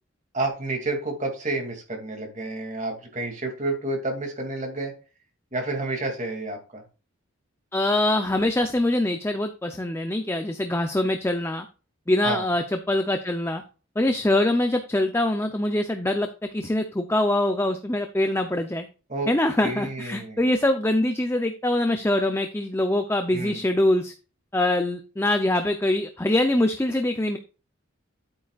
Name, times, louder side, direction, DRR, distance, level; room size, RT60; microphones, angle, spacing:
voice 1, 0.3-4.9 5.5-6.8 12.2-12.4 19.1-19.3 19.6-20.4 23.3-23.6, right 2 dB, 35° right, 2 dB, 2.5 m, -30 dB
voice 2, 7.7-11.7 12.1-13.6 14.0-16.3 16.5-18.9 19.3-24.1 24.5-27.4, left 1 dB, 10° left, 6 dB, 0.6 m, -24 dB
9.9 x 8.7 x 2.4 m, 0.34 s
head